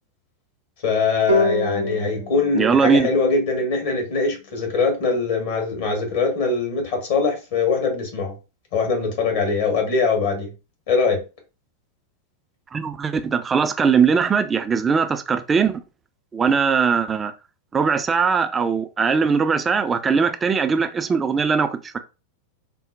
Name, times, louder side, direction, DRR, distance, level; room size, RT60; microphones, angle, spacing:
voice 1, 0.8-8.3 8.7-10.5 10.9-11.2, left 4 dB, 55° left, 1.2 m, -22 dB
sound 1, 1.3-4.6, left 2 dB, 80° right, 0.5 m, -27 dB
voice 2, 2.5-3.1 12.7-15.8 16.3-17.3 17.7-21.8, right 5 dB, 20° right, 0.3 m, -20 dB
3.8 x 2.0 x 2.5 m
figure-of-eight pair, 90°, 0 cm